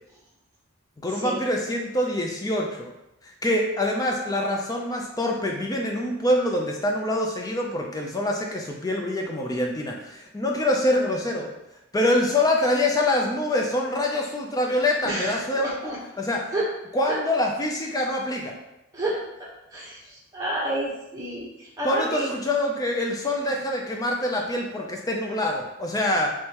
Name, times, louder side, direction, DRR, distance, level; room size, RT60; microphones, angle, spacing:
voice 1, 1.0-2.9 3.2-11.5 11.9-16.5 16.9-18.5 21.8-26.3, left 1 dB, 15° left, 0 dB, 0.4 m, -25 dB
voice 2, 15.1-16.0 16.5-16.7 18.9-21.5 21.8-22.2, right 1 dB, 15° right, -7 dB, 1.0 m, -30 dB
3.6 x 3.2 x 2.9 m, 0.89 s
head